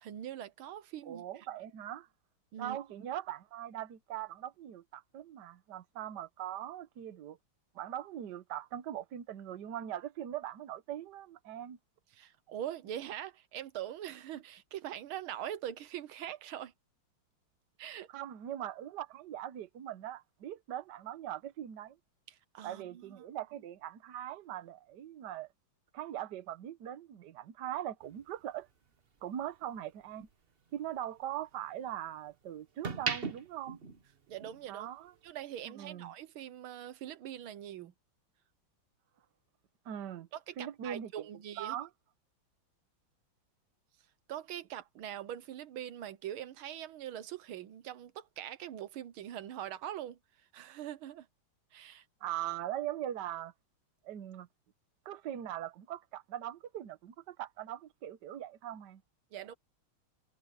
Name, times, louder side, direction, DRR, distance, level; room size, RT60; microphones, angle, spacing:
voice 1, 0.0-1.5 2.5-2.8 12.1-16.7 17.8-18.1 22.3-23.0 34.3-34.9 35.2-37.9 40.3-41.8 44.3-50.2 50.5-51.3 51.7-52.1 59.3-59.5, right 11 dB, 85° right, 1.8 m, -42 dB
voice 2, 1.1-2.1 2.6-7.4 7.7-11.8 18.1-22.0 22.6-25.5 25.9-28.7 29.2-30.3 30.7-33.8 34.7-35.1 35.7-36.1 39.8-40.3 40.6-41.3 41.6-41.9 52.2-53.5 54.0-54.5 55.0-59.0, right 11 dB, 60° right, 1.5 m, -41 dB
sound 1, 28.0-30.3 30.7-32.2 32.6-34.7 35.0-35.3, right 5 dB, 35° right, 1.1 m, -40 dB
omnidirectional pair, 2.3 m